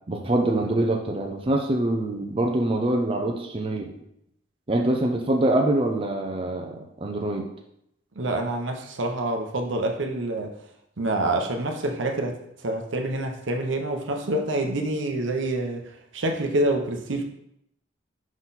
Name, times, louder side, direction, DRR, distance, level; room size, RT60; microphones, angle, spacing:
voice 1, 0.1-3.9 4.7-7.5, right 1 dB, 30° right, 0.5 m, -24 dB
voice 2, 8.2-10.6 11.0-12.4 12.6-15.8 16.1-17.2, right 1 dB, 75° right, 0.8 m, -26 dB
6.0 x 3.9 x 4.0 m
head